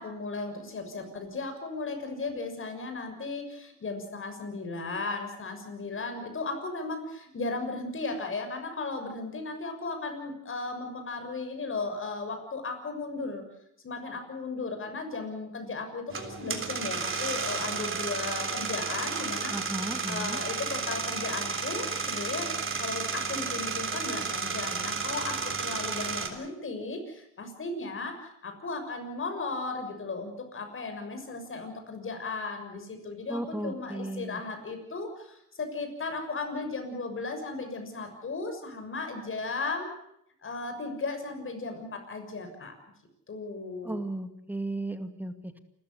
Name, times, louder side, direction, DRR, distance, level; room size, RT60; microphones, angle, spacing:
voice 1, 0.0-13.4 13.8-39.9 40.4-42.7 43.3-44.0, left 3 dB, 45° left, 6 dB, 6.7 m, -36 dB
sound 1, 16.1-26.3, right 5 dB, 45° right, 3.7 m, -32 dB
voice 2, 19.5-20.4 33.3-34.4 43.8-45.6, right 1 dB, 5° right, 8 dB, 2.1 m, -35 dB
28.5 x 14.5 x 8.0 m, 0.78 s
cardioid pair, 90°, 30 cm